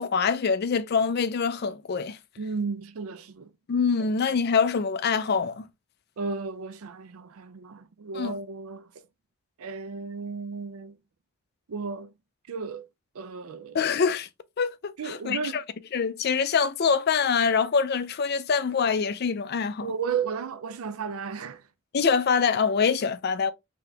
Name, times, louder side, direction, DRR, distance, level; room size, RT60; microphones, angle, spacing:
voice 1, 0.0-2.2 3.7-5.7 8.1-8.4 13.7-14.3 14.6-15.6 15.9-19.9 21.9-23.5, left 5 dB, 45° left, 0.4 m, -25 dB
voice 2, 2.4-3.5 6.2-8.9 9.6-11.0 11.7-12.1 12.5-12.9 13.1-13.8 15.0-15.6 19.8-21.6, right 5 dB, 80° right, 0.5 m, -34 dB
3.8 x 2.9 x 3.3 m
head